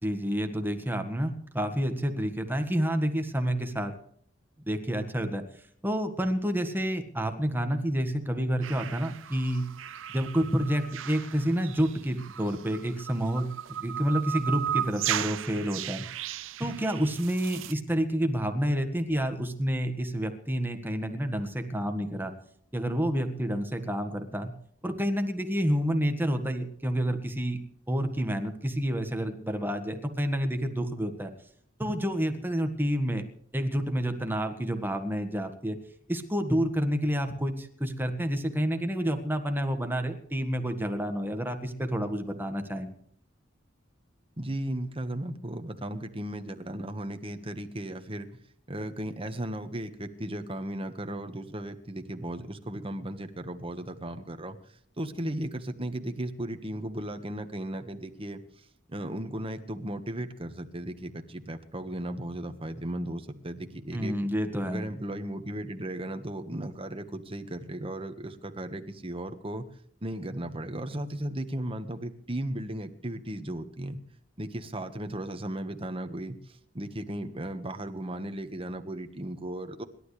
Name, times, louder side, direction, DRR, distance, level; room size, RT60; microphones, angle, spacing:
voice 1, 0.0-3.9 4.6-5.4 5.8-9.7 10.1-13.5 13.8-16.1 16.6-22.3 22.7-24.5 24.8-27.6 27.9-31.3 31.8-33.2 33.5-35.8 36.1-42.9 63.9-64.8, equal, 10° right, 6 dB, 1.6 m, -29 dB
sound 1, 8.6-17.7, right 11 dB, 75° right, 0.5 m, -36 dB
voice 2, 44.4-48.3 48.7-54.6 55.0-58.4 58.9-64.2 64.6-69.7 70.0-74.0 74.4-76.4 76.7-79.8, right 1 dB, 30° right, 7 dB, 1.4 m, -36 dB
26.5 x 12.0 x 3.3 m, 0.65 s
head